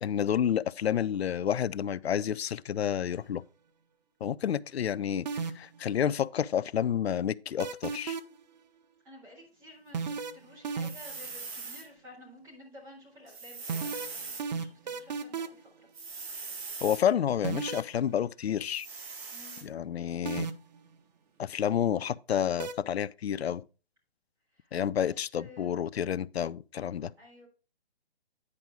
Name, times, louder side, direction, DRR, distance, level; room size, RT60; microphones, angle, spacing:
voice 1, 0.0-3.4 4.2-5.3 5.6-8.2 16.8-18.9 19.6-20.5 21.4-23.6 24.7-27.1, left 9 dB, 75° left, 0.5 m, -29 dB
sound 1, 5.3-5.8 7.6-8.4 9.9-11.2 13.7-15.7 17.4-17.9 20.3-20.8 22.6-22.7, right 5 dB, 45° right, 0.8 m, -33 dB
voice 2, 9.0-15.9 19.3-19.7 24.5-25.1 25.4-25.8 27.2-27.5, left 1 dB, 10° right, 3.5 m, -52 dB
sound 2, 10.8-11.8 13.3-14.4 15.9-17.0 18.7-19.6, right 4 dB, 70° right, 5.7 m, -41 dB
9.7 x 5.0 x 4.6 m
hypercardioid pair, 150°, 31 cm